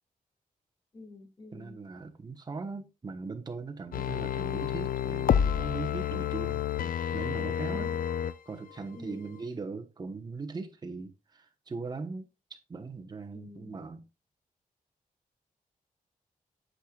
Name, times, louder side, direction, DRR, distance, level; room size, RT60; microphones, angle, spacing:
voice 1, 0.9-1.8 8.9-9.4 13.3-13.9, left 2 dB, 30° left, 2.4 m, -48 dB
voice 2, 1.5-6.9 7.1-7.9 8.5-12.3 12.7-14.0, right 4 dB, 30° right, 1.2 m, -39 dB
sound 1, 3.9-8.3 8.7-8.8, left 9 dB, 85° left, 0.5 m, -29 dB
9.0 x 6.7 x 2.4 m
wide cardioid pair, 150°, 14 cm